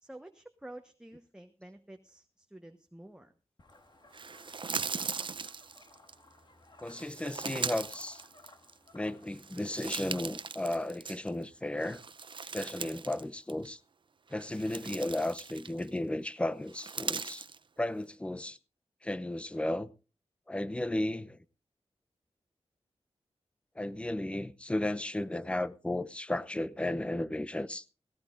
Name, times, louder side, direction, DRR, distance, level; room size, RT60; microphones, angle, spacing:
voice 1, 0.0-3.3, right 1 dB, 5° right, 1.1 m, -50 dB
sound 1, 3.6-9.6, left 2 dB, 45° left, 1.7 m, -58 dB
sound 2, 4.1-6.1 6.9-8.9 9.3-11.4 11.8-13.2 13.5-13.7 14.3-16.0 16.7-17.6, right 5 dB, 50° right, 0.6 m, -39 dB
voice 2, 6.8-8.2 8.9-12.0 12.5-13.8 14.3-17.5 17.8-18.6 19.0-19.9 20.5-21.4 23.8-27.8, left 1 dB, 10° left, 0.6 m, -34 dB
18.0 x 17.5 x 2.6 m
wide cardioid pair, 110°, 11 cm